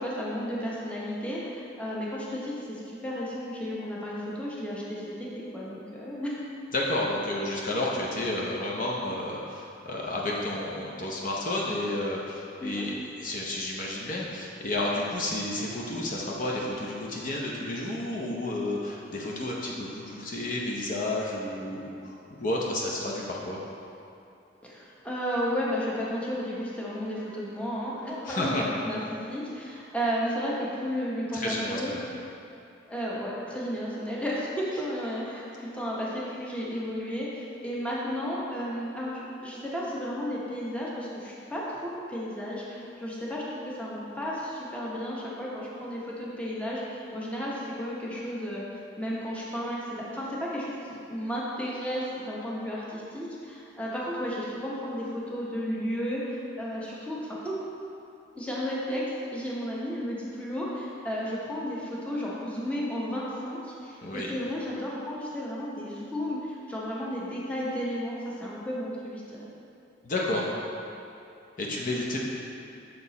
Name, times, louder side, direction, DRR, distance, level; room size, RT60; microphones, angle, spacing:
voice 1, 0.0-6.3 12.6-12.8 24.6-31.9 32.9-48.6 49.0-57.6 58.4-59.0 59.3-69.5, equal, 5° left, -6 dB, 0.9 m, -33 dB
voice 2, 6.7-12.9 13.2-23.6 28.3-28.7 31.3-32.1 64.0-64.3 70.0-70.5 71.6-72.2, left 1 dB, 45° left, -3 dB, 0.7 m, -31 dB
6.5 x 4.5 x 4.0 m, 2.7 s
head